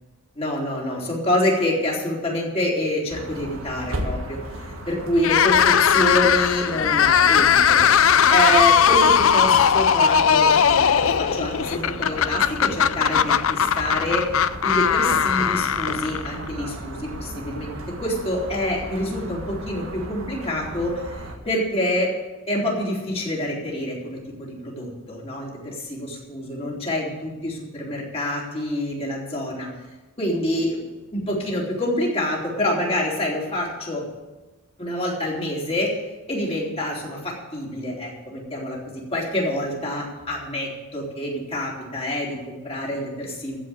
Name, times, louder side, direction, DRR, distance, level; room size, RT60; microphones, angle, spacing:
voice 1, 0.4-7.8 8.3-10.9 11.2-14.3 14.6-17.7 18.0-22.1 22.5-29.7 30.2-34.0 34.8-35.9 36.3-43.6, left 1 dB, 30° left, -4 dB, 4.0 m, -26 dB
sound 1, 3.1-21.4, right 1 dB, 90° right, 1.7 m, -35 dB
sound 2, 5.2-16.5, left 8 dB, 75° left, 0.5 m, -18 dB
15.0 x 5.7 x 9.7 m, 1.1 s
head